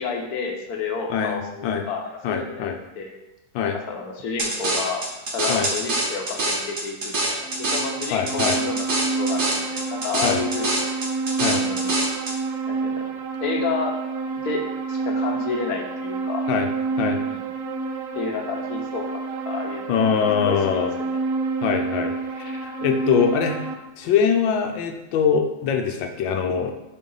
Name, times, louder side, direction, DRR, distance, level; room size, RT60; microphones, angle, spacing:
voice 1, 0.0-2.6 2.9-3.1 3.9-5.0 5.3-10.7 11.5-12.0 12.7-13.0 13.4-13.9 14.4-14.6 14.9-16.4 17.3-17.4 18.1-21.2, left 5 dB, 60° left, 1 dB, 1.2 m, -30 dB
voice 2, 1.1-1.8 2.2-2.8 3.5-3.8 5.5-5.7 8.1-8.6 10.2-10.4 11.4-11.6 16.5-16.7 17.0-17.2 19.9-20.9 21.6-23.6 24.0-26.7, left 7 dB, 90° left, 4 dB, 1.4 m, -23 dB
sound 1, 4.4-12.4, right 2 dB, 45° right, 1.2 m, -26 dB
sound 2, 7.4-23.7, right 4 dB, 80° right, 0.7 m, -28 dB
4.7 x 3.7 x 5.4 m, 0.97 s
omnidirectional pair, 2.0 m